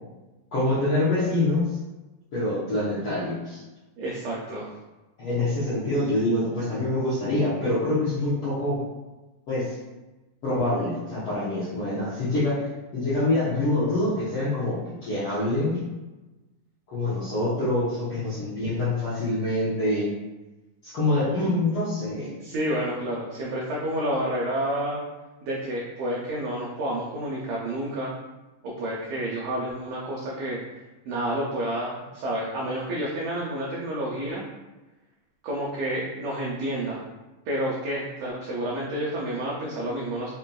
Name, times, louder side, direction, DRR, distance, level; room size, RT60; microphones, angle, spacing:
voice 1, 0.5-1.8 2.3-3.6 5.2-8.8 9.5-9.7 10.4-12.7 12.9-15.8 16.9-20.1 20.8-22.3, left 2 dB, 75° left, -11 dB, 1.2 m, -25 dB
voice 2, 4.0-4.7 22.3-25.0 25.4-28.1 28.6-30.6 31.1-34.4 35.4-37.0 37.5-40.3, right 1 dB, 85° right, -4 dB, 1.5 m, -29 dB
5.4 x 2.7 x 2.3 m, 1.1 s
omnidirectional pair, 3.8 m